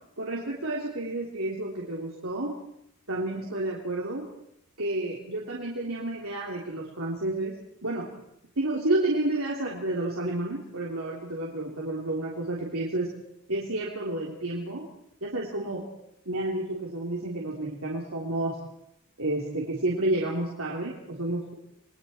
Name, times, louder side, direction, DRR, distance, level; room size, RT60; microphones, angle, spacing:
voice 1, 0.2-2.6 3.1-4.2 4.8-7.6 7.8-8.1 8.6-13.2 13.5-14.8 15.2-15.8 16.2-18.6 19.2-21.5, right 2 dB, 80° right, -3 dB, 3.4 m, -30 dB
29.5 x 22.0 x 4.4 m, 0.80 s
head